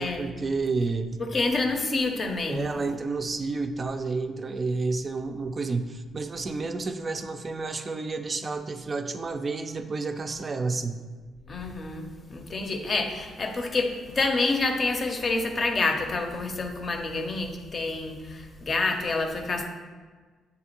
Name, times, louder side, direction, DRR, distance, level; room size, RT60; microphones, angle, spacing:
voice 1, 0.0-1.1 2.5-11.0, right 3 dB, 40° right, 7 dB, 0.3 m, -30 dB
voice 2, 1.2-2.7 11.5-19.7, left 3 dB, 45° left, 4 dB, 0.6 m, -28 dB
6.5 x 2.4 x 2.9 m, 1.4 s
hypercardioid pair, 50°, 0 cm